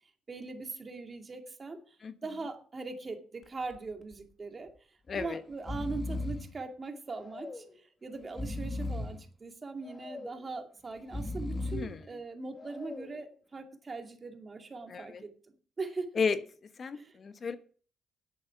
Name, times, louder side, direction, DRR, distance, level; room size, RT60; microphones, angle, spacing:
voice 1, 0.3-2.0 2.2-4.7 5.1-16.1 16.9-17.2, right 3 dB, 35° right, 5 dB, 2.4 m, -41 dB
Breathing, 3.4-3.8 4.1-4.2 5.1-5.3 5.5-6.5 7.1-7.7 8.2-9.2 9.8-10.4 11.0-12.0 12.6-13.2, left 2 dB, 30° left, 2.2 m, -38 dB
voice 2, 5.1-5.4 11.7-12.0 14.9-15.2 16.2-16.4 16.8-17.6, left 5 dB, 45° left, 10 dB, 1.1 m, -33 dB
11.0 x 8.5 x 5.9 m, 0.43 s
cardioid pair, 90°, 0 cm